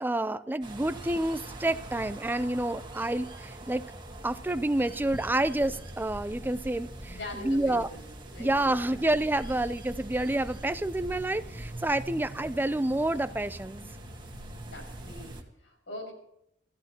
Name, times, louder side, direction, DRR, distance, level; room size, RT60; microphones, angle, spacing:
voice 1, 0.0-3.8 4.2-7.9 8.4-13.8, right 1 dB, 10° right, 13 dB, 0.5 m, -29 dB
sound 1, 0.6-15.4, right 1 dB, 25° right, 2.1 m, -43 dB
voice 2, 7.0-8.6 8.9-9.0 14.7-16.1, left 1 dB, 85° left, 3 dB, 6.4 m, -43 dB
28.5 x 14.5 x 2.9 m, 0.74 s
head